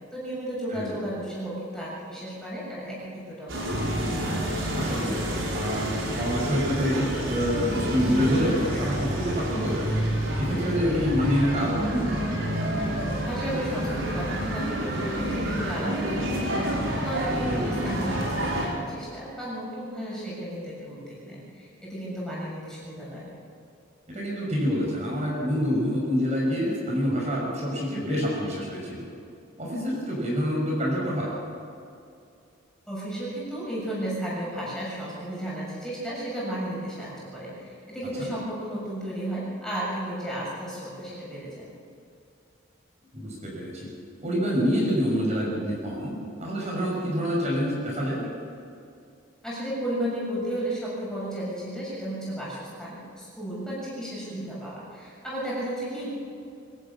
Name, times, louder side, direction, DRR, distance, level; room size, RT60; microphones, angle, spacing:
voice 1, 0.1-3.8 13.2-16.7 17.0-23.3 32.9-41.7 49.4-56.1, right 1 dB, 5° left, -7 dB, 7.0 m, -34 dB
sound 1, 3.5-18.7, right 1 dB, 80° right, 4.5 m, -28 dB
voice 2, 4.7-5.1 5.5-10.0 10.3-12.1 17.4-17.7 24.1-29.0 29.6-31.3 38.2-38.3 43.1-43.9 44.2-48.2, equal, 35° right, -4 dB, 6.1 m, -27 dB
24.5 x 13.0 x 8.6 m, 2.5 s
head